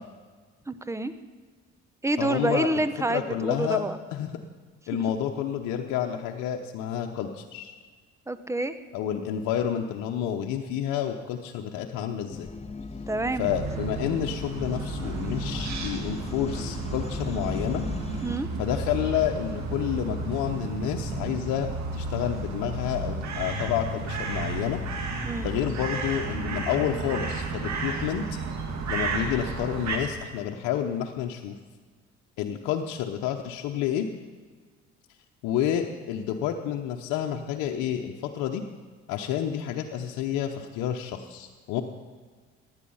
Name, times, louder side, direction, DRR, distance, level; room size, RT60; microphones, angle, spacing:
voice 1, 0.7-1.1 2.0-4.0 8.3-8.7 13.1-13.5 18.2-18.5 25.2-25.5, right 2 dB, 10° right, 12 dB, 1.0 m, -27 dB
voice 2, 2.2-2.8 3.1-3.8 4.1-4.3 4.9-7.7 8.9-12.5 13.4-17.8 18.6-24.8 25.4-28.4 28.9-31.6 32.4-34.1 35.4-38.6 39.1-41.8, left 10 dB, 80° left, 3 dB, 0.9 m, -29 dB
sound 1, 12.3-18.4, left 3 dB, 20° left, 1.0 m, -37 dB
sound 2, 13.4-30.0, right 3 dB, 65° right, 2.3 m, -32 dB
15.5 x 10.5 x 5.6 m, 1.5 s
supercardioid pair, 60°, 30 cm